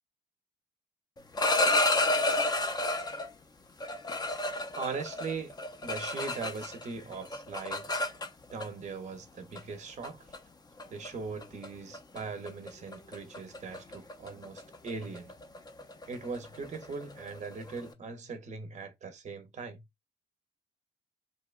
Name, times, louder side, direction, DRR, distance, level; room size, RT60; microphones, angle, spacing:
sound 1, 1.2-3.3 3.8-6.9 7.1-8.7 9.6-9.7 10.0-10.4 10.8-11.1 11.4-11.7 11.9-12.2 12.5-17.8, left 2 dB, 20° left, 0.4 m, -31 dB
voice 1, 4.8-5.5 5.8-7.8 8.5-10.3 10.9-15.3 16.1-19.8, right 4 dB, 35° right, 0.6 m, -40 dB
2.8 x 2.1 x 2.3 m
cardioid pair, 90°, 20 cm